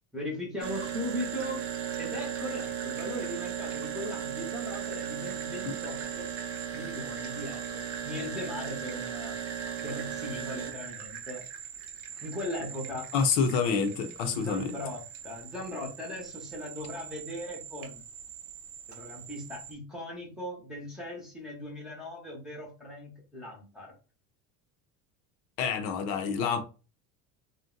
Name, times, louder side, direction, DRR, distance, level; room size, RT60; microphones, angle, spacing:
voice 1, 0.1-1.6 2.0-6.3 6.7-9.4 9.8-11.5 12.2-13.1 14.3-18.0 18.9-23.9, left 1 dB, ahead, 0.8 m, -38 dB
sound 1, 0.6-19.7, right 8 dB, 45° right, 0.6 m, -38 dB
voice 2, 13.1-14.7 25.6-26.6, left 6 dB, 65° left, 0.6 m, -27 dB
2.5 x 2.1 x 3.7 m
cardioid pair, 165°, 33 cm